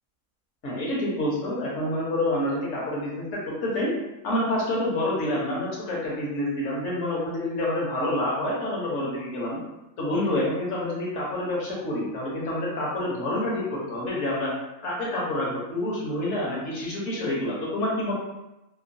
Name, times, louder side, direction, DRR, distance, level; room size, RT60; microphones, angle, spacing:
voice 1, 0.6-3.9 4.2-9.6 10.0-14.5 14.8-18.1, left 1 dB, 65° left, -5 dB, 1.2 m, -28 dB
3.0 x 2.1 x 2.5 m, 0.93 s
omnidirectional pair, 1.4 m